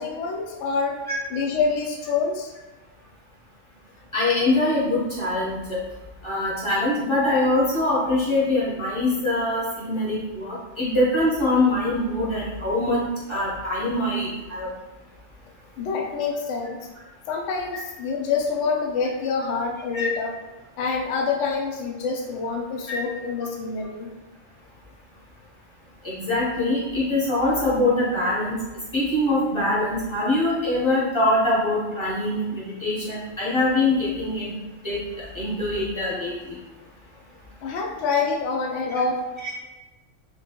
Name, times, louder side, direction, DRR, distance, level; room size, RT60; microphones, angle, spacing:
voice 1, 0.0-1.0 1.3-2.5 15.8-16.9 17.3-20.3 20.8-24.1 37.6-39.2, left 4 dB, 70° left, 1 dB, 0.9 m, -26 dB
voice 2, 4.1-5.8 6.2-13.0 13.3-14.7 19.9-20.1 22.9-23.0 26.0-28.6 28.9-34.5 34.8-36.6 38.9-39.0 39.4-39.5, left 1 dB, 25° left, -7 dB, 1.0 m, -23 dB
3.1 x 3.0 x 2.8 m, 1.1 s
omnidirectional pair, 1.3 m